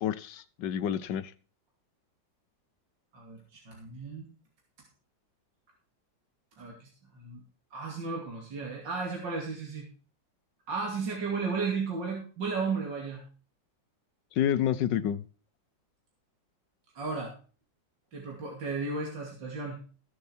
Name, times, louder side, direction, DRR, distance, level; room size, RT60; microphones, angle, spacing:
voice 1, 0.0-1.3 14.4-15.2, left 10 dB, 75° left, 17 dB, 1.4 m, -29 dB
voice 2, 3.1-4.3 6.6-6.9 7.1-7.4 7.7-9.9 10.7-13.2 17.0-17.3 18.1-19.8, right 4 dB, 75° right, -1 dB, 3.3 m, -34 dB
18.5 x 6.9 x 4.5 m, 0.38 s
omnidirectional pair, 2.0 m